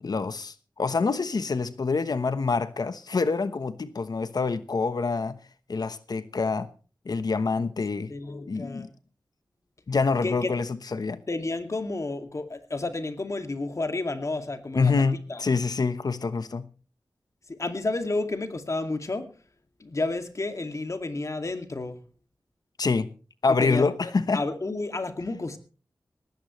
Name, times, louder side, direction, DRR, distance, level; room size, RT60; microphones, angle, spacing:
voice 1, 0.0-5.4 5.7-6.7 7.0-8.1 8.5-8.9 9.9-10.6 10.9-11.2 14.7-16.7 22.8-23.1 23.4-24.4, left 4 dB, 70° left, 1.1 m, -26 dB
voice 2, 8.1-8.9 10.2-10.5 11.3-14.9 15.3-15.4 17.5-19.3 19.8-22.0 23.6-25.6, left 2 dB, 45° left, 2.3 m, -31 dB
19.5 x 16.0 x 3.2 m
wide cardioid pair, 85°, 7 cm